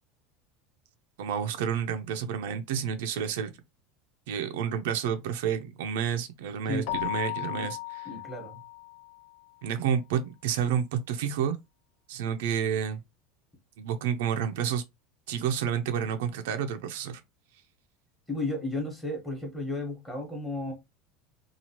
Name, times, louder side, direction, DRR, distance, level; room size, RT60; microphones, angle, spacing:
voice 1, 1.2-3.5 4.3-8.0 9.6-11.6 12.1-13.0 13.8-14.8 15.3-17.2, right 8 dB, 75° right, 0.5 m, -30 dB
voice 2, 6.7-7.0 7.5-7.7 8.0-8.6 18.3-20.7, left 2 dB, 5° left, 1.1 m, -33 dB
Keyboard (musical), 6.9-9.3, left 20 dB, 55° left, 0.3 m, -35 dB
3.0 x 2.4 x 2.8 m
supercardioid pair, 165°, 0 cm